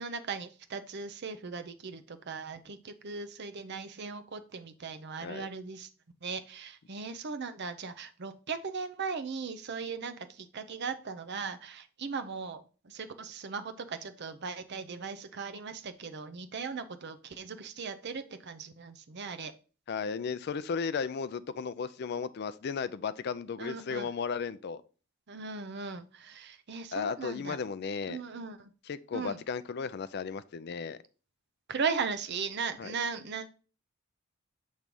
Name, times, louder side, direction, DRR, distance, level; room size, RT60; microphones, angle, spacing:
voice 1, 0.0-5.9 6.2-19.5 23.6-24.1 25.3-27.6 28.1-28.7 29.1-29.4 31.7-33.5, right 5 dB, 55° right, 0.6 m, -38 dB
voice 2, 19.9-24.8 26.9-28.2 28.9-31.0 32.8-32.9, left 5 dB, 55° left, 0.4 m, -35 dB
7.2 x 3.2 x 5.3 m
head